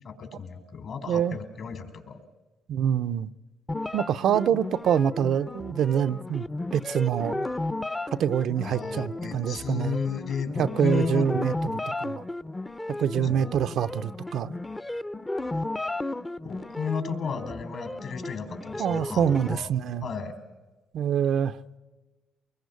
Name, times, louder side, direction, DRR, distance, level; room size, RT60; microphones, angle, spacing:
voice 1, 0.0-2.2 8.6-11.3 12.9-13.5 16.4-19.7 20.0-20.3, left 6 dB, 60° left, 3.8 m, -33 dB
voice 2, 1.1-1.4 2.7-3.3 3.9-6.5 6.7-7.5 8.1-10.0 10.6-11.5 11.9-12.2 13.0-14.5 18.8-20.1 20.9-21.6, right 9 dB, 70° right, 0.7 m, -25 dB
sound 1, 3.7-19.5, left 2 dB, 15° left, 0.7 m, -34 dB
25.0 x 21.5 x 8.3 m
cardioid pair, 90°, 0 cm